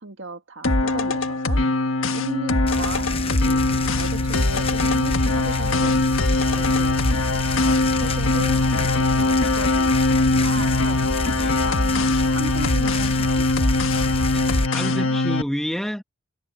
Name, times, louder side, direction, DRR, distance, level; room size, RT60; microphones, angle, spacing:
voice 1, 0.0-1.6 2.1-6.2 6.5-7.0 8.0-8.6 8.9-9.9 10.4-11.0 11.6-13.9 14.8-15.2, right 2 dB, 55° right, 2.1 m, -36 dB
sound 1, 0.6-15.4, left 2 dB, 70° left, 1.6 m, -21 dB
sound 2, 2.7-14.7, left 2 dB, 25° left, 0.9 m, -28 dB
voice 2, 14.3-16.0, equal, ahead, 1.3 m, -29 dB
head